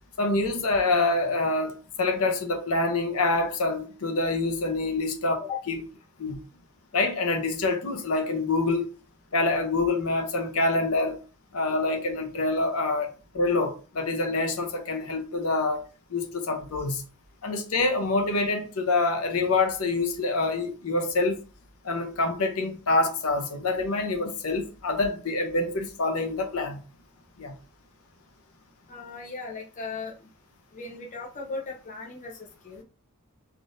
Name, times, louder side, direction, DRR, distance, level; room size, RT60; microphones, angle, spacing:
voice 1, 0.2-5.4 5.7-5.8 6.2-6.4 6.9-8.9 9.3-11.2 11.5-13.1 13.3-15.8 16.1-17.0 17.4-21.4 21.8-26.8 27.4-27.5, left 3 dB, 70° left, 0.7 m, -26 dB
voice 2, 28.9-30.3 30.7-32.8, left 4 dB, 35° left, 0.6 m, -37 dB
3.4 x 2.5 x 2.6 m
head